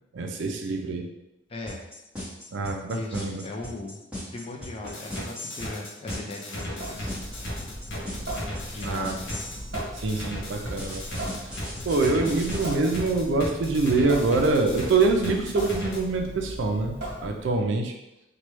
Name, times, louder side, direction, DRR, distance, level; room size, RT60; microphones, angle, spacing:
voice 1, 0.1-1.1 2.5-3.4 8.8-9.2 9.9-11.5 11.9-17.9, right 3 dB, 75° right, 3 dB, 0.4 m, -25 dB
sound 1, 1.7-9.7 10.8-12.7, left 1 dB, 5° right, 1.3 m, -37 dB
voice 2, 2.9-4.0 4.3-7.3 8.7-9.4, left 2 dB, 30° left, 0 dB, 0.4 m, -38 dB
sound 2, 4.8-16.0, left 1 dB, 85° left, 0.7 m, -36 dB
Water tap faucet / Sink (filling or washing) / Drip, 6.7-17.6, right 1 dB, 50° right, 1.0 m, -38 dB
3.0 x 2.2 x 3.0 m, 0.91 s
head